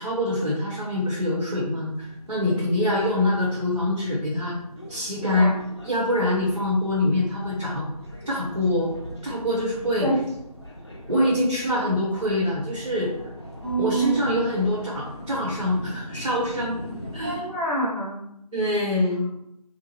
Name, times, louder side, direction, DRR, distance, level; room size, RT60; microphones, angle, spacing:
voice 1, 0.0-4.5 4.9-5.5 5.8-7.8 8.3-8.9 9.2-10.1 11.1-13.1 13.8-16.8 17.1-17.4 18.5-19.3, left 1 dB, 65° right, -5 dB, 1.0 m, -24 dB
sound 1, 1.9-17.4, equal, 45° left, 0.4 m, -41 dB
voice 2, 13.6-14.3 17.2-18.2, right 2 dB, 30° right, -10 dB, 0.5 m, -27 dB
2.7 x 2.1 x 3.0 m, 0.81 s
figure-of-eight pair, 175°, 21 cm